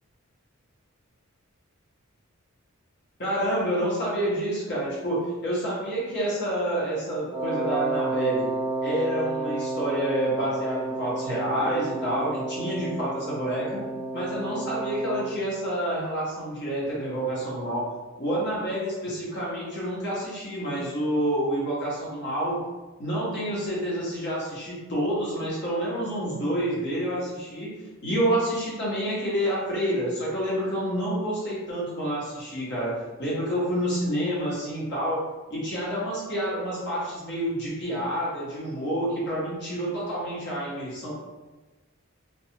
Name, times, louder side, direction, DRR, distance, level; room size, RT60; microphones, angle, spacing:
voice 1, 3.2-8.5 8.8-13.8 14.1-17.8 18.2-22.6 23.0-27.7 28.0-32.9 33.2-41.1, right 1 dB, 55° left, -6 dB, 1.0 m, -28 dB
Wind instrument woodwind instrument, 7.3-15.4, right 3 dB, 20° right, 0.4 m, -31 dB
2.3 x 2.2 x 2.8 m, 1.2 s
head